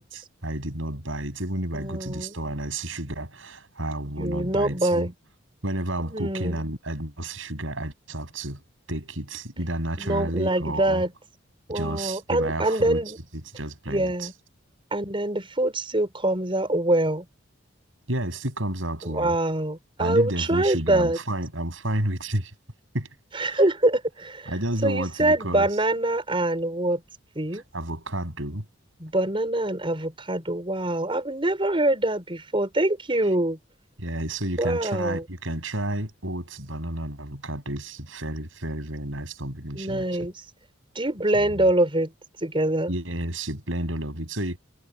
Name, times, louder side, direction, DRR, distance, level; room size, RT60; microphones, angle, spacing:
voice 1, 0.0-5.1 5.6-8.6 8.9-11.0 11.7-13.0 13.4-14.3 18.1-19.4 20.0-22.5 22.9-23.1 23.3-23.6 24.5-25.7 27.5-28.7 34.0-40.1 41.3-41.7 42.9-44.6, right 1 dB, 90° right, 7.2 m, -31 dB
voice 2, 1.7-2.3 4.2-5.1 6.1-6.6 10.0-11.1 11.7-13.2 13.9-14.3 14.9-17.2 19.1-21.2 23.3-24.5 24.8-27.0 27.3-27.6 29.0-33.6 34.6-35.2 39.7-40.3 40.9-42.1 42.4-42.9, right 1 dB, 25° right, 4.8 m, -24 dB
head